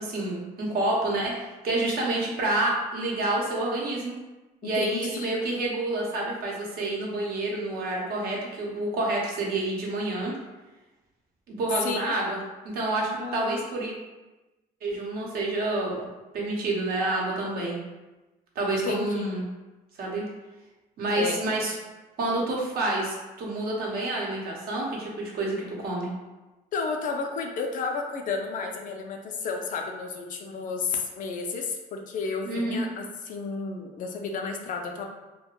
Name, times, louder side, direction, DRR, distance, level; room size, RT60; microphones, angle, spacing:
voice 1, 0.0-4.1 4.6-10.3 11.5-12.4 12.7-13.9 14.8-16.0 16.3-17.8 18.6-19.4 20.0-20.2 21.0-21.7 22.2-26.1 32.4-32.8, right 2 dB, 65° right, -3 dB, 0.8 m, -28 dB
voice 2, 4.6-5.3 11.8-12.1 13.2-13.5 18.7-19.3 21.2-21.4 26.7-35.1, left 4 dB, 50° left, 3 dB, 0.4 m, -32 dB
2.3 x 2.2 x 3.0 m, 1.1 s
cardioid pair, 110°, 17 cm